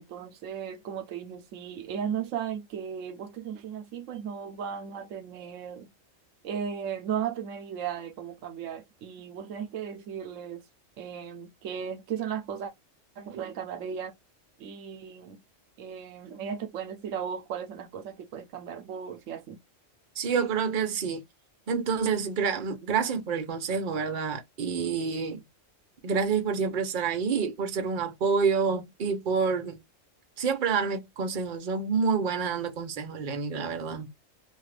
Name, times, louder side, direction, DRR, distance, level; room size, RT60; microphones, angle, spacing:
voice 1, 0.0-5.9 6.4-10.6 11.0-12.7 13.2-14.2 14.6-15.4 15.8-19.6, right 8 dB, 80° right, 1.0 m, -36 dB
voice 2, 20.2-21.2 21.7-25.4 26.0-29.8 30.4-34.1, right 5 dB, 45° right, 0.8 m, -28 dB
2.8 x 2.4 x 3.2 m
omnidirectional pair, 1.3 m